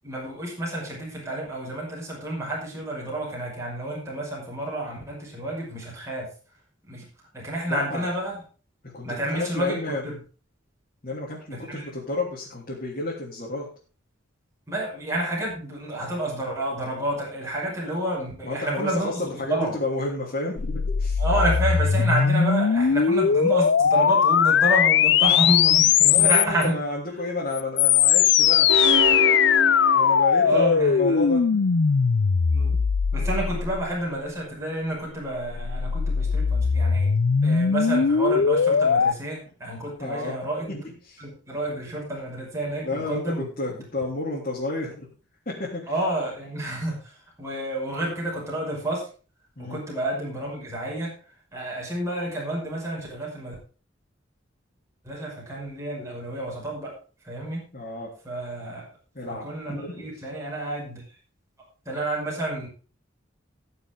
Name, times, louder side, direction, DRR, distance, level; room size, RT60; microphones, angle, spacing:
voice 1, 0.0-6.3 6.8-7.1 7.3-8.4 9.0-9.8 10.0-10.2 11.5-11.9 14.7-19.1 19.4-19.7 21.2-26.8 30.4-31.3 32.5-32.8 33.1-37.1 37.4-40.7 41.2-43.5 45.9-49.1 49.6-51.1 51.5-53.6 55.0-56.9 57.2-57.6 58.2-58.8 59.3-61.0 61.9-62.7, right 1 dB, 15° right, -4 dB, 5.5 m, -29 dB
voice 2, 7.7-8.1 8.9-10.0 11.0-13.7 18.4-21.2 22.0-22.1 26.1-28.8 29.9-31.4 40.0-41.2 42.8-45.1 45.4-45.9 49.6-49.8 57.7-58.1 59.1-60.1, left 2 dB, 45° left, -5 dB, 3.4 m, -31 dB
sound 1, 20.6-26.7 27.5-34.1 35.2-39.1, left 7 dB, 65° left, 0.5 m, -20 dB
sound 2, 28.7-30.7, right 3 dB, 80° right, 1.1 m, -27 dB
19.5 x 6.8 x 3.7 m, 0.37 s
head